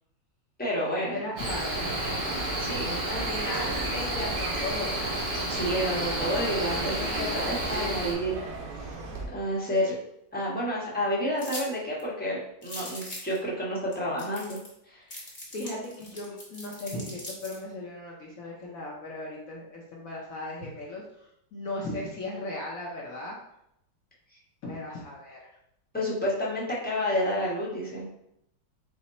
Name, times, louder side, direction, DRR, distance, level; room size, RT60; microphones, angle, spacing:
voice 1, 0.6-1.2 2.6-3.0 5.5-8.4 8.8-8.9 9.3-10.0 10.3-14.6 14.9-15.0 25.9-28.1, equal, 5° left, -6 dB, 0.8 m, -30 dB
voice 2, 1.1-2.2 3.0-5.1 15.5-23.4 24.6-25.5, left 1 dB, 60° left, -3 dB, 1.0 m, -37 dB
Cricket, 1.4-8.1, right 1 dB, 35° right, 1.0 m, -30 dB
Chirp tweet, 1.5-9.3, right 2 dB, 65° right, 1.4 m, -39 dB
sound 1, 11.4-11.7 12.0-12.1 12.6-13.4 13.9-14.0 14.2-14.8 15.1-17.6, left 1 dB, 30° left, 1.0 m, -40 dB
5.0 x 2.2 x 4.1 m, 0.79 s
omnidirectional pair, 2.0 m